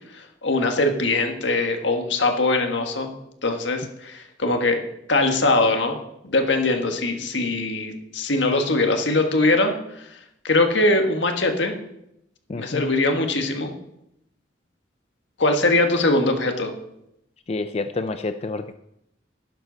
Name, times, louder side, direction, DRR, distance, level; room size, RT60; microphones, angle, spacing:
voice 1, 0.1-3.1 3.4-4.8 5.1-6.0 6.2-9.7 10.4-11.8 12.6-13.7 15.4-16.7, left 2 dB, 85° left, 5 dB, 1.6 m, -21 dB
voice 2, 12.5-12.9 17.5-18.7, left 3 dB, 35° left, 9 dB, 0.4 m, -28 dB
12.0 x 10.5 x 4.0 m, 0.80 s
head